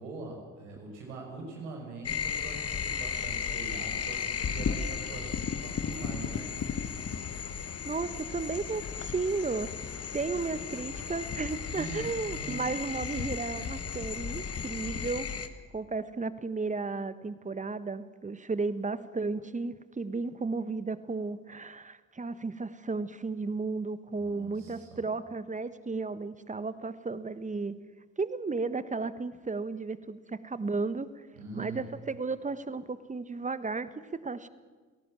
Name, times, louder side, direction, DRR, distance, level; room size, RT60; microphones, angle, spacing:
voice 1, 0.0-6.6 11.6-12.7 24.1-25.0 31.3-31.8, right 3 dB, 80° right, 1 dB, 5.8 m, -43 dB
sound 1, 2.0-15.5, left 7 dB, 40° left, 1.7 m, -35 dB
voice 2, 7.8-9.7 10.1-27.8 28.2-31.1 31.5-34.5, right 4 dB, 20° right, 14 dB, 1.4 m, -34 dB
27.5 x 17.5 x 7.6 m, 1.4 s
figure-of-eight pair, 50°, 37 cm